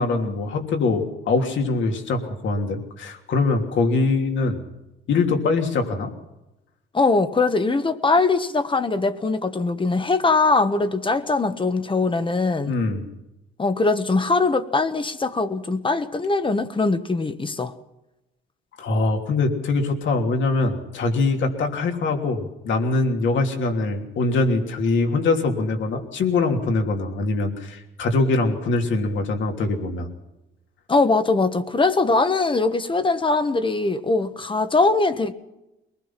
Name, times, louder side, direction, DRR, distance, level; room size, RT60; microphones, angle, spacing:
voice 1, 0.0-4.6 5.1-6.1 12.7-13.1 18.8-30.1, left 3 dB, 70° left, 3.1 m, -23 dB
voice 2, 6.9-12.7 13.6-17.7 30.9-35.3, left 3 dB, 25° left, 1.3 m, -21 dB
22.5 x 19.5 x 5.9 m
cardioid pair, 90°, 20 cm